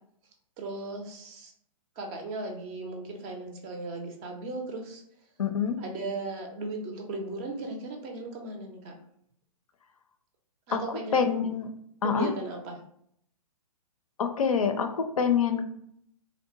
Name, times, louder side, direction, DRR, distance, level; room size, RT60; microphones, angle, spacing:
voice 1, 0.6-1.5 2.0-5.0 5.8-9.0 10.7-11.5 12.0-12.8, right 2 dB, 25° right, 3 dB, 0.4 m, -37 dB
voice 2, 5.4-5.8 10.7-11.7 12.0-12.3 14.2-15.6, left 6 dB, 70° left, 7 dB, 0.4 m, -26 dB
2.7 x 2.0 x 2.8 m, 0.68 s
figure-of-eight pair, 120°, 19 cm